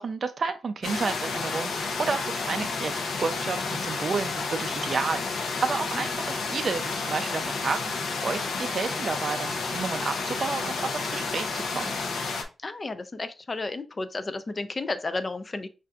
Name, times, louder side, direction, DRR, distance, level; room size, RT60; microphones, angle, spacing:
voice 1, 0.0-11.9, right 4 dB, 45° right, 7 dB, 0.4 m, -31 dB
sound 1, 0.8-12.4, left 4 dB, 85° left, 0.6 m, -31 dB
voice 2, 12.6-15.7, left 3 dB, 30° left, 11 dB, 0.4 m, -32 dB
5.4 x 2.5 x 2.3 m, 0.32 s
wide cardioid pair, 135°, 0 cm